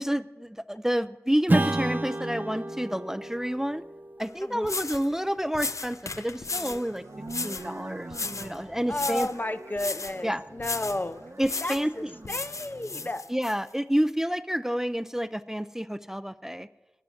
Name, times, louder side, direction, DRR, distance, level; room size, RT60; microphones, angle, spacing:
voice 1, 0.0-3.8 4.2-7.0 7.4-9.3 10.2-10.4 11.4-11.9 13.3-16.7, equal, 10° right, 12 dB, 0.4 m, -29 dB
Strum, 1.5-6.4, right 1 dB, 35° right, 0.8 m, -31 dB
sound 1, 4.2-4.3 4.6-5.1 5.5-6.8 7.3-7.7 8.1-8.6 8.9-9.4 9.8-10.2 10.6-11.0 11.4-11.9 12.2-13.5, left 4 dB, 80° left, 0.5 m, -34 dB
voice 2, 4.4-4.7 8.9-11.2 11.6-13.3, left 1 dB, 35° left, 11 dB, 0.6 m, -32 dB
sound 2, 6.4-13.2, right 2 dB, 75° right, 1.0 m, -44 dB
12.0 x 9.6 x 7.6 m, 1.1 s
wide cardioid pair, 45°, 5 cm